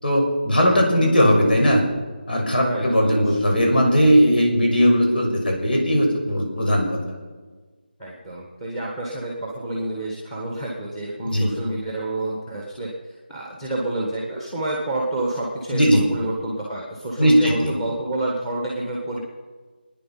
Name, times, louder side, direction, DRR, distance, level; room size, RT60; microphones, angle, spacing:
voice 1, 0.0-1.8 2.3-6.9 11.2-11.5 15.7-16.0 17.2-17.7, equal, 65° left, 1 dB, 6.7 m, -18 dB
voice 2, 2.6-3.4 8.0-19.2, right 1 dB, 5° left, -2 dB, 1.5 m, -29 dB
25.0 x 10.0 x 5.8 m, 1.4 s
figure-of-eight pair, 175°, 6 cm